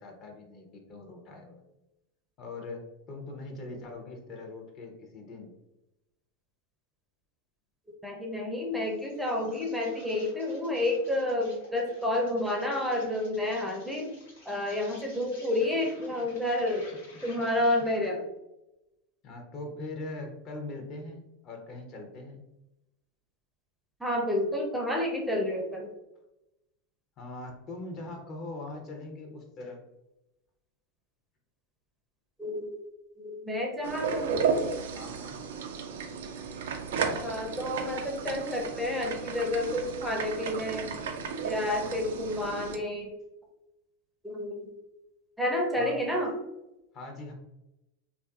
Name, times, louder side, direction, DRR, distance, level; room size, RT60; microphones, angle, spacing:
voice 1, 0.0-1.6 2.4-5.5 19.2-22.4 27.2-29.8 34.9-35.4 45.8-46.0 46.9-47.3, left 2 dB, 45° left, 2 dB, 0.7 m, -41 dB
voice 2, 8.0-14.1 14.5-16.9 17.2-18.2 24.0-25.9 32.4-32.9 33.2-34.6 37.0-40.9 41.4-43.1 44.2-44.7 45.4-46.3, left 1 dB, 5° right, 0 dB, 0.5 m, -30 dB
Insect, 8.8-18.2, left 2 dB, 80° left, 1.0 m, -53 dB
sound 1, 33.8-42.8, right 5 dB, 75° right, 0.3 m, -34 dB
2.5 x 2.4 x 2.3 m, 0.93 s
hypercardioid pair, 95°, 0 cm